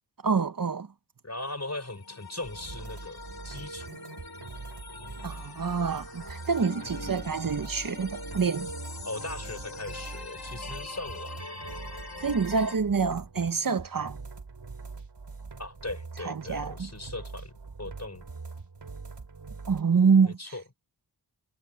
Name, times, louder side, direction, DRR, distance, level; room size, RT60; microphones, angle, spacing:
voice 1, 0.2-0.9 5.2-8.7 12.2-14.2 16.2-16.9 19.7-20.4, right 5 dB, 50° right, 1.1 m, -26 dB
voice 2, 1.2-3.2 3.4-4.0 6.9-7.4 9.0-11.3 15.6-17.5 17.8-18.3 20.4-20.6, left 2 dB, 40° left, 6.4 m, -39 dB
sound 1, 1.7-12.8, left 3 dB, 55° left, 3.2 m, -43 dB
sound 2, 2.4-19.8, right 4 dB, 70° right, 3.8 m, -43 dB
wide cardioid pair, 60°, 42 cm